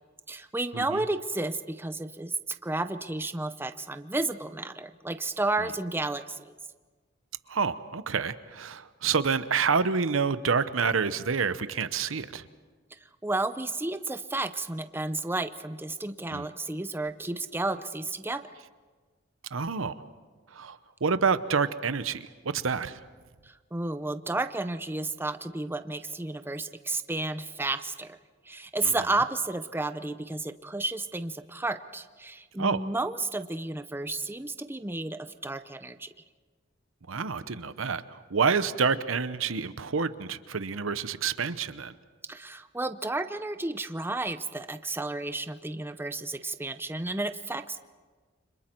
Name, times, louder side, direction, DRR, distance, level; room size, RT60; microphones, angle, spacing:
voice 1, 0.3-6.5 13.2-18.5 23.5-28.2 28.5-36.1 42.3-47.8, right 2 dB, 10° right, 10 dB, 0.7 m, -32 dB
voice 2, 7.5-12.5 16.3-16.5 19.5-20.0 20.5-23.0 28.8-28.9 32.6-32.8 37.1-41.9, right 5 dB, 90° right, 13 dB, 0.8 m, -28 dB
30.0 x 26.0 x 4.6 m, 1.4 s
head